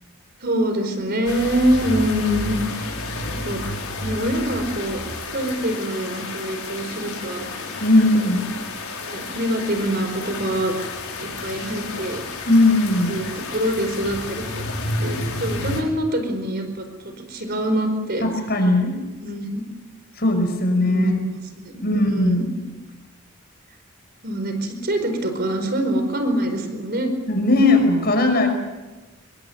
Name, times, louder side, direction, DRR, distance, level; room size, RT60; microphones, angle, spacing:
voice 1, 0.4-2.9 3.3-3.6 4.0-5.0 5.3-7.5 8.0-8.3 9.0-10.7 11.2-12.2 13.0-14.6 15.0-18.3 19.2-19.6 20.8-22.4 24.2-27.1, right 1 dB, 45° right, 6 dB, 4.8 m, -25 dB
sound 1, 1.2-15.8, left 2 dB, 75° left, 6.5 m, -31 dB
voice 2, 7.8-8.4 12.5-13.2 18.2-19.0 20.2-21.2 21.8-22.5 27.3-28.5, left 2 dB, 45° left, 6 dB, 5.8 m, -18 dB
26.5 x 23.0 x 8.1 m, 1.2 s
head